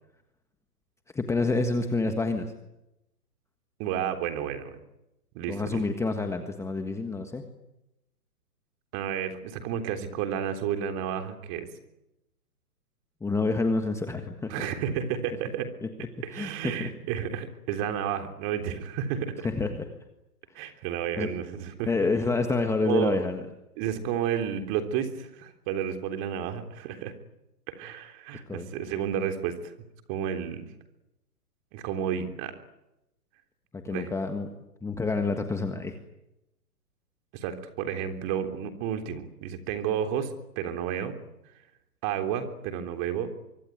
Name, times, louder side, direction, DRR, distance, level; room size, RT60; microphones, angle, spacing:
voice 1, 1.1-2.5 5.5-7.4 13.2-14.5 15.8-15.9 16.3-16.9 19.4-19.9 20.6-20.7 21.2-21.3 21.9-23.4 28.5-28.7 33.7-34.5 34.8-36.0, left 3 dB, 5° left, 6 dB, 1.5 m, -28 dB
voice 2, 3.8-4.7 5.3-5.8 8.9-11.7 14.5-15.7 16.2-19.5 20.6-21.9 22.8-23.2 23.8-27.1 27.7-29.7 30.1-30.7 31.7-32.5 33.9-34.1 37.3-41.2 42.0-43.3, right 9 dB, 30° right, 6 dB, 3.6 m, -31 dB
25.0 x 24.0 x 9.3 m, 0.90 s
hypercardioid pair, 135°, 47 cm